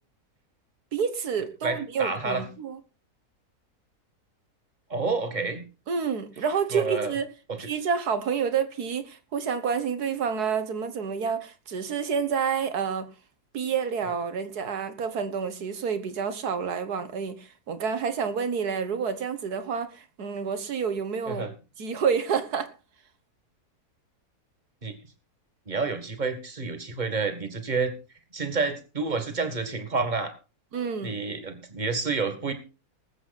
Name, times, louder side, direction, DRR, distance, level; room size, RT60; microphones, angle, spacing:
voice 1, 0.9-2.8 5.9-7.3 7.6-13.1 13.5-21.5 21.8-22.7 30.7-31.2, right 6 dB, 80° right, 1.9 m, -29 dB
voice 2, 1.6-2.4 4.9-5.6 6.7-7.1 7.5-7.7 21.3-21.5 24.8-25.0 25.7-27.9 28.3-30.3 31.0-32.5, right 4 dB, 30° right, 2.0 m, -29 dB
20.0 x 7.9 x 4.1 m
omnidirectional pair, 1.6 m